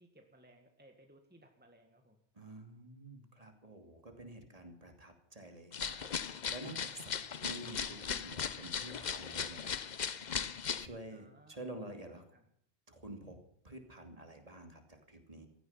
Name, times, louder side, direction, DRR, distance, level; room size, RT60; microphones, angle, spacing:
voice 1, 0.0-2.2 7.1-7.4 11.1-11.6 11.9-12.0 12.3-12.5, right 1 dB, 10° right, 4 dB, 1.7 m, -62 dB
voice 2, 2.3-9.7 10.8-12.2 12.9-13.4 13.6-15.5, right 1 dB, 35° right, 5 dB, 2.7 m, -49 dB
sound 1, 5.7-10.9, left 7 dB, 45° left, 0.8 m, -38 dB
16.5 x 14.5 x 5.7 m, 0.67 s
omnidirectional pair, 1.1 m